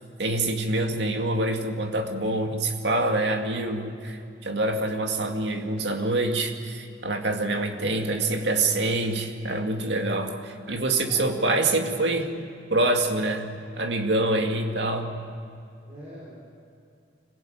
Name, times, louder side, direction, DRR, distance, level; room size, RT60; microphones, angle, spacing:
voice 1, 0.2-12.3 12.7-15.1, right 2 dB, 75° right, 4 dB, 2.2 m, -26 dB
voice 2, 7.3-8.5 10.9-11.2 11.6-12.0 15.8-16.4, equal, 40° right, -6 dB, 5.6 m, -44 dB
25.5 x 17.0 x 8.9 m, 2.5 s
head